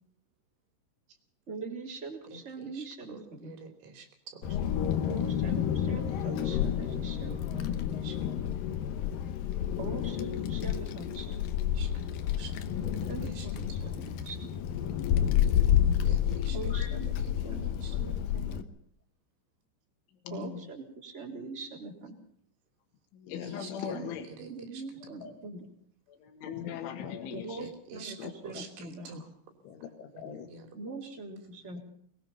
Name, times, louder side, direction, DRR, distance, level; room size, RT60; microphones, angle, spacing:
voice 1, 1.5-3.5 5.1-7.7 9.8-11.4 13.1-14.8 16.5-17.1 17.4-18.6 20.3-22.2 23.9-24.1 24.4-25.6 27.3-29.2 30.7-31.8, right 3 dB, 15° right, 0 dB, 3.1 m, -42 dB
voice 2, 2.3-4.6 6.7-8.5 11.7-12.1 12.4-13.5 15.9-16.7 17.2-17.4 17.8-18.0 23.4-24.8 27.6-29.3 30.1-30.7, right 4 dB, 85° right, 4 dB, 5.6 m, -48 dB
Wind, 4.4-18.6, left 10 dB, 75° left, 2.2 m, -30 dB
voice 3, 20.3-20.7 23.1-24.3 25.2-25.3 26.1-27.7 28.2-28.3 29.6-30.5, left 8 dB, 90° left, 5 dB, 4.1 m, -40 dB
22.5 x 20.5 x 5.7 m, 0.62 s
omnidirectional pair, 5.3 m